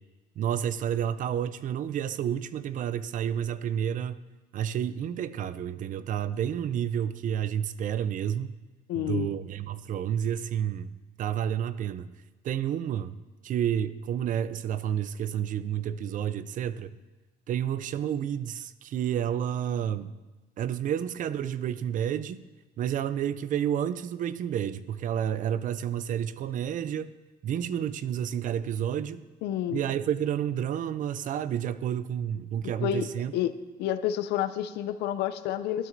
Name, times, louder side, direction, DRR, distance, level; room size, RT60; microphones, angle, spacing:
voice 1, 0.4-4.2 4.5-8.5 9.0-12.1 12.4-13.2 13.4-16.9 17.5-20.1 20.6-22.4 22.8-27.1 27.4-29.2 29.7-33.3, right 9 dB, 50° right, 14 dB, 0.4 m, -30 dB
voice 2, 8.9-9.3 29.4-29.8 32.8-33.1 33.3-33.5 33.8-35.9, left 11 dB, 80° left, 11 dB, 0.5 m, -29 dB
12.5 x 9.0 x 2.6 m, 1.2 s
cardioid pair, 110°, 17 cm